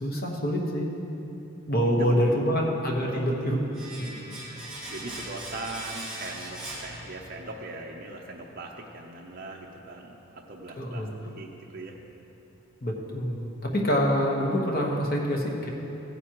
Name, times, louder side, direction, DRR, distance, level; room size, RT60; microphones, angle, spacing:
voice 1, 0.0-0.9 1.7-3.6 10.8-11.1 12.8-15.7, equal, 45° left, -1 dB, 1.2 m, -26 dB
voice 2, 1.8-2.4 3.1-3.6 4.1-12.1, right 2 dB, 45° right, -1 dB, 0.6 m, -41 dB
Domestic sounds home sounds, 3.7-7.6 7.8-8.0, right 1 dB, 5° right, 2.3 m, -40 dB
15.0 x 9.4 x 3.0 m, 3.0 s
head